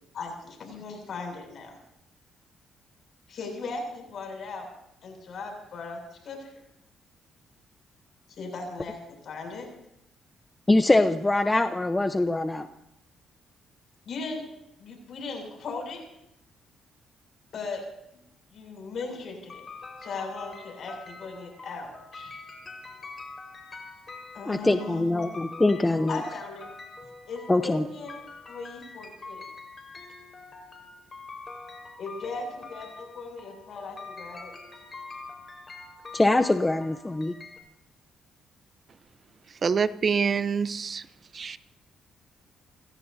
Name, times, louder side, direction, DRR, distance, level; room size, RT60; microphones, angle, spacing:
voice 1, 0.1-1.8 3.3-4.7 5.0-6.5 8.3-9.0 9.2-9.7 14.1-14.4 14.8-16.0 17.5-17.8 18.1-18.2 18.5-19.6 20.0-22.4 24.3-25.4 26.1-26.7 27.3-28.2 28.5-29.4 32.0-34.5, left 4 dB, 60° left, 3 dB, 7.3 m, -38 dB
voice 2, 10.7-12.7 24.5-26.2 27.5-27.8 36.1-37.3, left 2 dB, 15° left, 8 dB, 0.9 m, -23 dB
sound 1, 19.5-37.6, left 3 dB, 35° left, 4.8 m, -45 dB
voice 3, 39.6-41.1 41.3-41.6, right 6 dB, 45° right, 13 dB, 0.8 m, -26 dB
29.0 x 16.5 x 2.8 m, 0.80 s
cardioid pair, 90°, 0 cm